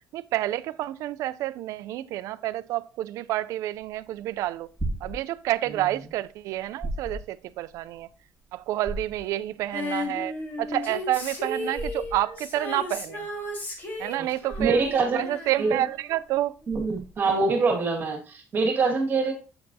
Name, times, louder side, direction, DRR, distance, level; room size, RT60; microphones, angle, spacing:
voice 1, 0.1-4.7 5.0-8.1 8.5-10.3 10.6-13.3 14.0-14.8 15.1-16.5 17.3-17.4, right 14 dB, 70° right, 0.4 m, -29 dB
sound 1, 3.8-17.3, right 1 dB, ahead, 1.9 m, -38 dB
Female singing, 9.7-16.3 16.6-16.7, left 1 dB, 35° left, 1.9 m, -35 dB
voice 2, 14.6-15.3 15.6-15.8 16.7-19.3, right 4 dB, 35° right, 1.8 m, -24 dB
7.6 x 6.7 x 2.7 m
cardioid pair, 140°, 6 cm